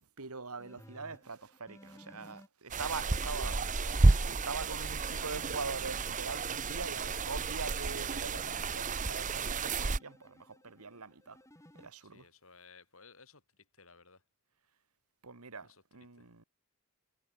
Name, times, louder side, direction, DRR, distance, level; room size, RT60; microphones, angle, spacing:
voice 1, 0.2-3.6 4.4-11.4 11.8-12.3 15.2-16.4, right 4 dB, 85° right, 2.0 m, -42 dB
sound 1, 0.6-2.5 3.2-5.5 6.3-8.7 9.5-11.9, left 1 dB, 15° left, 3.2 m, -59 dB
sound 2, 2.7-10.0, right 3 dB, 35° right, 0.9 m, -31 dB
voice 2, 2.8-3.9 12.0-14.2 15.6-16.3, left 4 dB, 65° left, 5.0 m, -59 dB
head